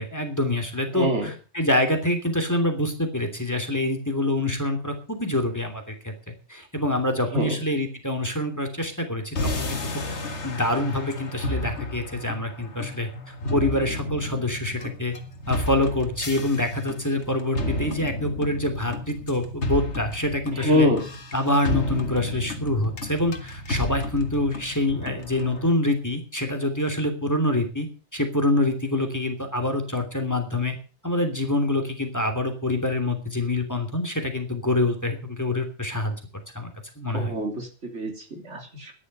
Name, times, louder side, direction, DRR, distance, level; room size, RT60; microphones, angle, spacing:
voice 1, 0.0-6.1 6.5-9.8 10.4-15.1 15.5-20.9 21.3-27.9 28.1-30.7 31.0-36.2 36.5-36.7 37.0-37.3, left 1 dB, 15° left, 6 dB, 3.0 m, -26 dB
voice 2, 0.9-1.3 7.3-7.5 20.5-21.0 37.1-38.9, equal, 80° right, 4 dB, 3.5 m, -25 dB
sound 1, 9.4-25.7, left 2 dB, 70° left, 2.1 m, -32 dB
13.0 x 11.0 x 6.8 m, 0.37 s
omnidirectional pair, 1.2 m